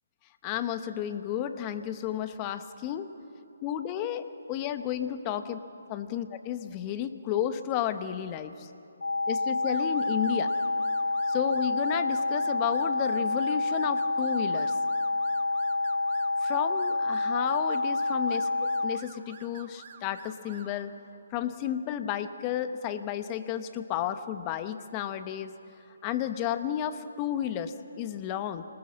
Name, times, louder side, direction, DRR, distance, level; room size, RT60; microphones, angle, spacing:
voice 1, 0.4-3.1 3.6-5.6 5.9-8.7 9.3-10.5 11.3-14.7 16.4-20.9 21.3-25.5 26.0-28.6, left 10 dB, 25° left, 10 dB, 1.1 m, -32 dB
sound 1, 9.0-19.0, left 2 dB, 85° left, 0.4 m, -28 dB
sound 2, 9.6-20.8, right 7 dB, 45° right, 1.8 m, -50 dB
26.5 x 20.0 x 7.6 m, 2.8 s
figure-of-eight pair, 150°, 0 cm